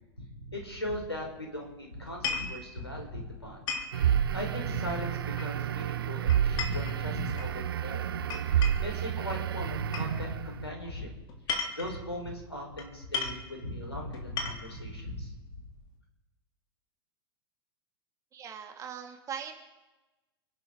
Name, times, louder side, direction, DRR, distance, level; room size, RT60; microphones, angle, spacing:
voice 1, 0.3-3.6 4.0-8.0 8.8-11.1 11.8-15.3, left 1 dB, 85° left, 0 dB, 4.8 m, -38 dB
sound 1, 2.1-2.6 3.7-4.0 5.4-5.8 6.3-7.5 8.3-8.9 9.9-10.1 11.3-12.0 12.8-12.9 13.1-13.4 14.1-14.8, left 5 dB, 35° left, 2.9 m, -35 dB
sound 2, 3.9-10.6, right 10 dB, 65° right, 0.5 m, -30 dB
voice 2, 18.3-19.6, right 8 dB, 25° right, 3 dB, 2.7 m, -40 dB
30.0 x 11.0 x 3.9 m, 1.1 s
figure-of-eight pair, 95°, 13 cm